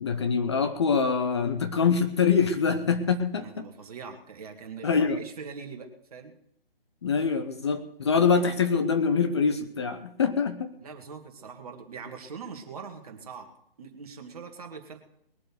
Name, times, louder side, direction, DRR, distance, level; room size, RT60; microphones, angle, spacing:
voice 1, 0.0-3.7 4.8-5.2 7.0-10.7, left 5 dB, 30° left, 8 dB, 0.8 m, -24 dB
voice 2, 3.3-6.3 10.8-13.5 13.8-15.0, right 5 dB, 40° right, 4 dB, 2.2 m, -42 dB
21.0 x 7.7 x 6.5 m, 0.76 s
figure-of-eight pair, 140°, 30 cm